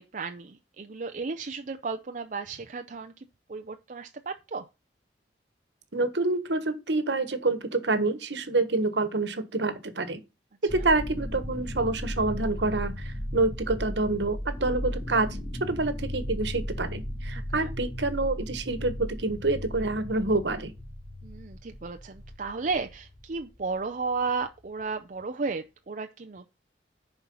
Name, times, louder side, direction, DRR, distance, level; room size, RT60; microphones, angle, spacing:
voice 1, 0.0-4.7 17.5-17.7 21.2-26.5, right 4 dB, 45° right, 0.5 m, -34 dB
voice 2, 5.9-10.2 10.6-20.7, right 2 dB, 75° right, 1.3 m, -27 dB
sound 1, 10.7-24.6, equal, 25° left, 2.7 m, -36 dB
10.5 x 4.5 x 5.4 m
head